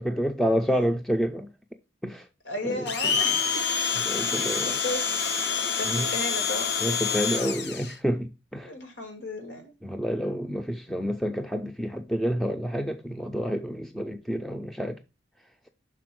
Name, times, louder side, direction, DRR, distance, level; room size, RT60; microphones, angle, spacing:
voice 1, 0.0-1.5 2.0-2.3 2.6-2.9 4.1-4.8 5.9-6.1 6.8-8.7 9.8-15.0, equal, ahead, 0.4 m, -29 dB
voice 2, 2.4-3.6 4.3-5.1 5.6-6.7 8.6-9.7, left 1 dB, 85° left, 2.3 m, -35 dB
Domestic sounds home sounds, 2.9-7.9, left 6 dB, 65° left, 0.7 m, -27 dB
5.9 x 4.2 x 6.0 m
head